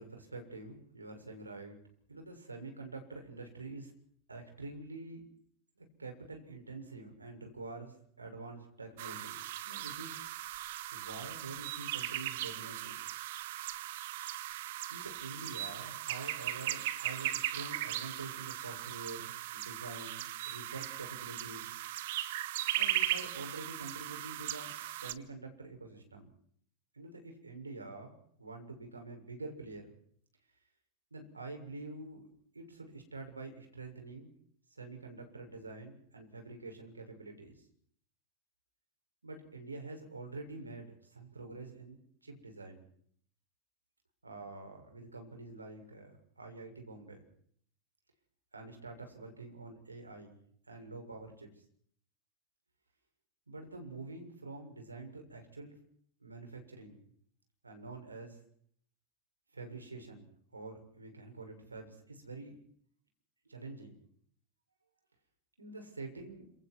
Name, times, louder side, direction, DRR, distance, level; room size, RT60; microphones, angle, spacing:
voice 1, 0.0-1.8 2.1-3.9 4.3-5.2 5.8-10.2 10.9-12.9 14.9-21.7 22.7-24.7 25.0-26.3 26.9-28.1 28.4-29.9 31.1-32.3 32.5-34.3 34.7-37.6 39.2-42.8 44.2-47.2 48.5-50.4 50.7-51.5 53.5-55.8 56.2-57.1 57.6-58.4 59.5-60.3 60.5-62.6 63.5-64.0 65.6-66.5, right 3 dB, 90° right, 4 dB, 6.9 m, -47 dB
sound 1, 9.0-25.1, right 14 dB, 60° right, 1.8 m, -38 dB
29.5 x 27.5 x 4.8 m, 0.63 s
figure-of-eight pair, 85°, 0 cm